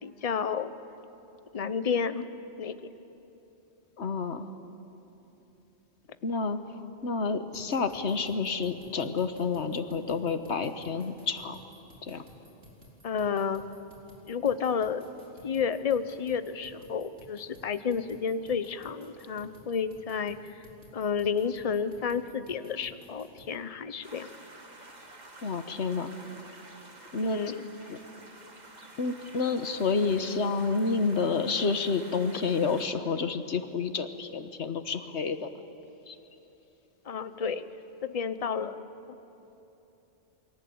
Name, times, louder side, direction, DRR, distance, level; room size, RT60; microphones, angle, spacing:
voice 1, 0.0-0.7 1.5-2.3 2.6-2.8 13.0-13.6 14.3-15.0 15.4-20.6 20.9-24.3 27.2-27.6 37.1-37.7 38.0-38.8 39.1-39.2, left 6 dB, 35° left, 12 dB, 0.9 m, -31 dB
voice 2, 4.0-4.5 6.2-11.6 12.0-12.2 25.4-26.1 27.1-27.4 27.9-28.0 29.0-35.5 36.1-36.2, left 4 dB, 80° left, 9 dB, 1.5 m, -29 dB
sound 1, 7.5-23.5, equal, 85° right, 4.6 m, -55 dB
sound 2, 24.0-32.9, right 2 dB, 40° right, 2.1 m, -50 dB
28.5 x 23.0 x 8.6 m, 3.0 s
omnidirectional pair, 1.1 m